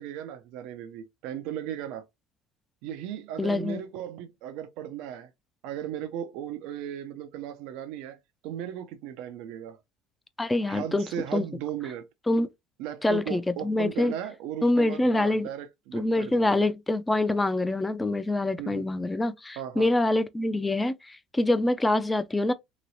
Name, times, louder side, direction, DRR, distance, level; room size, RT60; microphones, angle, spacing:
voice 1, 0.0-2.1 2.8-5.3 5.6-8.2 8.4-9.8 10.6-12.0 12.8-16.6 18.6-18.9 19.6-19.9, right 10 dB, 75° right, 0.5 m, -36 dB
voice 2, 3.4-3.8 10.4-11.0 11.3-11.4 12.3-12.5 13.0-14.1 14.6-15.5 15.9-22.5, left 2 dB, 10° left, 0.4 m, -25 dB
3.0 x 2.9 x 2.7 m
supercardioid pair, 105°, 0 cm